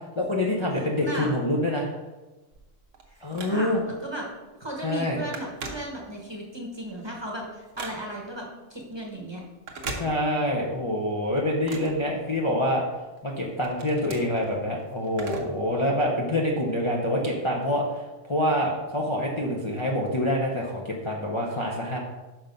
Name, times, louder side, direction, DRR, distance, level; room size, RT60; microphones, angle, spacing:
voice 1, 0.2-1.9 3.2-3.8 4.8-5.2 10.0-12.8 13.2-22.0, left 1 dB, 25° left, -3 dB, 0.8 m, -26 dB
voice 2, 1.0-1.3 3.1-4.3 4.6-9.4, right 1 dB, 20° right, -1 dB, 1.2 m, -36 dB
Telephone, 2.5-4.0 4.4-4.6 4.9-6.4 6.8-8.4 9.5-10.6 11.0-12.7 13.2-15.7 16.0-16.1 17.0-17.1, right 3 dB, 85° right, 1.4 m, -40 dB
5.7 x 5.7 x 5.3 m, 1.1 s
omnidirectional pair, 1.3 m